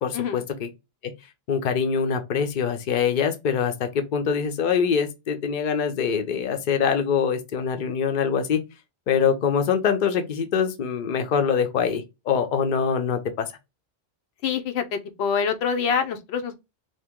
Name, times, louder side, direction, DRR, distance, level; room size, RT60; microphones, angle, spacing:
voice 1, 0.0-0.7 1.0-1.1 1.5-8.6 9.1-13.5, left 6 dB, 55° left, 0.7 m, -24 dB
voice 2, 14.4-16.6, left 6 dB, 90° left, 0.8 m, -25 dB
2.8 x 2.6 x 3.5 m
omnidirectional pair, 1.0 m